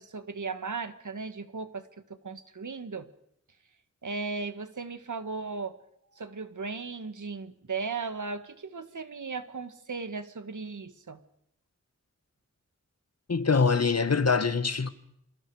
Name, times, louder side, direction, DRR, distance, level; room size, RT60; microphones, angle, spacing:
voice 1, 0.0-3.1 4.0-5.8 6.1-11.2, right 4 dB, 85° right, 1.8 m, -36 dB
voice 2, 13.3-14.9, left 5 dB, 55° left, 1.6 m, -24 dB
28.5 x 27.0 x 5.0 m
wide cardioid pair, 90°, 30 cm